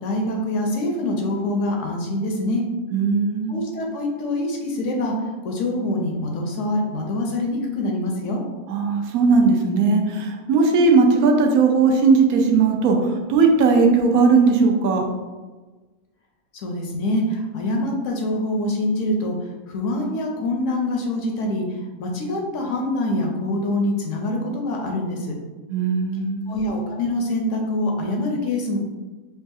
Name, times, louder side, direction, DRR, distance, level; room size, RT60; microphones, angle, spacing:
voice 1, 0.0-2.6 3.5-5.1 5.4-8.4 16.6-19.4 19.7-21.6 22.0-25.3 26.5-28.8, left 1 dB, 70° left, 1 dB, 0.8 m, -25 dB
voice 2, 2.9-3.5 8.7-15.0 25.7-26.6, right 4 dB, 80° right, 3 dB, 1.0 m, -18 dB
3.8 x 2.4 x 2.6 m, 1.3 s
omnidirectional pair, 1.5 m